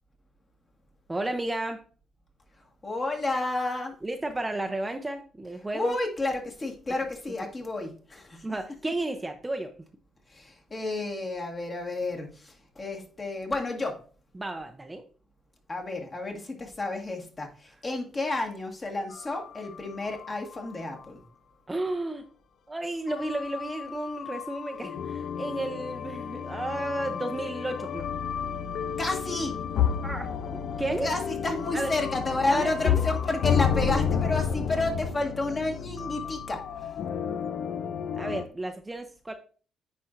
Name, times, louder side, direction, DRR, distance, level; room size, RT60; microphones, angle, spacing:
voice 1, 1.1-1.8 4.0-6.0 8.4-9.8 14.3-15.0 21.7-22.2 22.7-28.1 30.0-31.1 31.7-31.9 32.5-33.0 38.2-39.3, right 2 dB, 15° right, 6 dB, 0.6 m, -33 dB
voice 2, 2.8-4.0 5.7-8.5 10.3-14.0 15.7-21.2 29.0-29.5 31.0-36.6, left 2 dB, 30° left, 2 dB, 1.7 m, -31 dB
sound 1, 19.1-20.7 21.0-21.1 21.8-21.9 23.1-38.4, left 7 dB, 70° left, 0.4 m, -31 dB
9.8 x 4.2 x 2.6 m, 0.40 s
cardioid pair, 90°, 0 cm